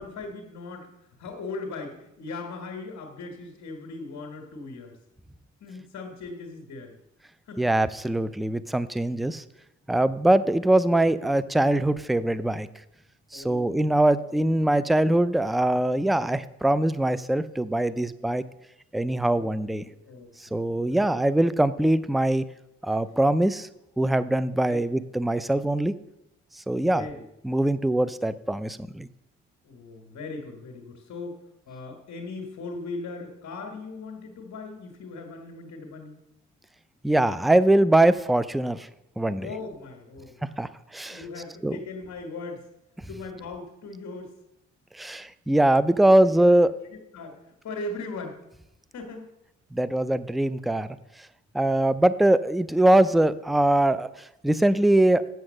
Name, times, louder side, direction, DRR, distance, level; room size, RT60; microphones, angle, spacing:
voice 1, 0.0-5.0 5.6-6.9 7.5-7.7 13.3-13.9 14.3-14.5 19.2-21.1 24.7-24.9 26.8-27.2 29.6-31.4 31.7-36.2 39.4-40.4 41.0-42.7 43.1-44.4 46.2-46.6 47.1-48.4 48.9-49.3, left 3 dB, 65° left, 2 dB, 1.7 m, -39 dB
voice 2, 7.6-9.4 9.9-12.7 13.3-18.4 18.9-19.8 20.4-22.4 22.8-23.7 24.0-25.9 26.6-27.1 27.4-29.1 37.0-38.9 39.2-39.5 40.6-41.2 41.6-41.8 44.9-46.7 49.7-50.9 51.5-55.2, right 1 dB, ahead, 15 dB, 0.4 m, -22 dB
7.9 x 7.1 x 6.5 m, 0.87 s
cardioid pair, 90°, 30 cm